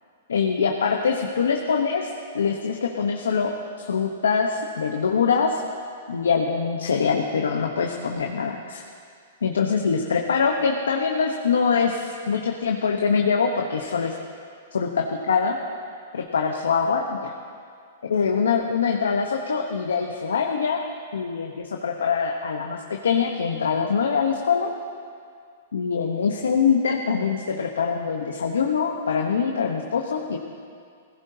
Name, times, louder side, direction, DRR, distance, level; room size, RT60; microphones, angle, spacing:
voice 1, 0.3-3.5 3.8-5.6 6.1-8.8 9.4-14.2 14.7-15.6 16.1-17.3 18.1-20.8 21.1-24.7 25.7-30.4, left 5 dB, 85° left, 2 dB, 1.0 m, -24 dB
21.0 x 16.0 x 2.8 m, 2.2 s
hypercardioid pair, 125°, 0 cm